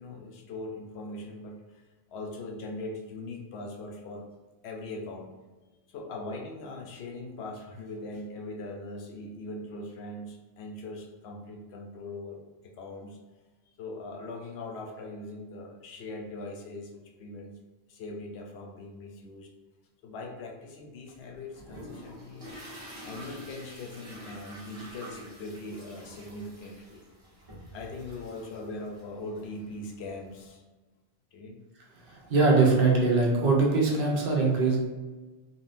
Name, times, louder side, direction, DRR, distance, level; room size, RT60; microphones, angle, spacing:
voice 1, 0.0-1.8 2.1-4.3 4.6-5.3 5.9-13.2 13.8-17.6 17.9-19.5 20.0-22.6 23.0-27.0 27.7-30.6 31.3-31.6, left 2 dB, 75° left, 1 dB, 0.8 m, -41 dB
sound 1, 21.1-30.5, equal, 35° right, 1.0 m, -48 dB
voice 2, 32.0-34.8, right 3 dB, 65° right, -2 dB, 0.8 m, -22 dB
3.7 x 2.1 x 2.5 m, 1.3 s
omnidirectional pair, 1.1 m